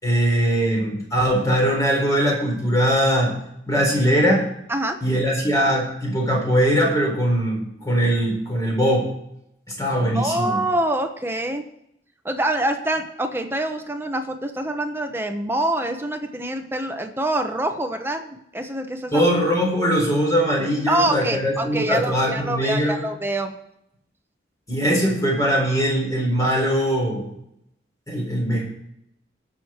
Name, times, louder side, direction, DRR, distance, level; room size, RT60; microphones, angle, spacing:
voice 1, 0.0-3.4 3.7-4.5 5.0-9.1 9.8-10.6 19.1-23.0 24.7-27.3 28.1-28.6, equal, 20° left, -1 dB, 4.2 m, -21 dB
voice 2, 10.1-11.7 12.2-19.2 20.9-23.5, right 1 dB, 15° right, 5 dB, 1.1 m, -25 dB
19.0 x 6.6 x 4.5 m, 0.77 s
head